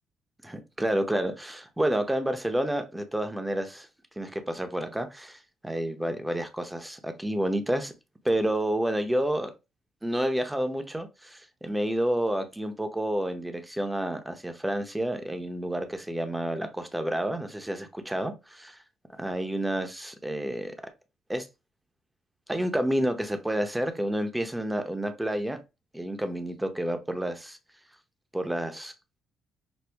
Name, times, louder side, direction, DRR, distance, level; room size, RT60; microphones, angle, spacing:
voice 1, 0.4-3.9 4.2-7.9 8.2-9.5 10.0-18.8 19.1-20.7 21.3-21.5 22.5-25.6 25.9-27.6 28.3-28.9, right 1 dB, 10° right, 0.7 m, -29 dB
6.1 x 2.2 x 3.4 m
cardioid pair, 90°, 0 cm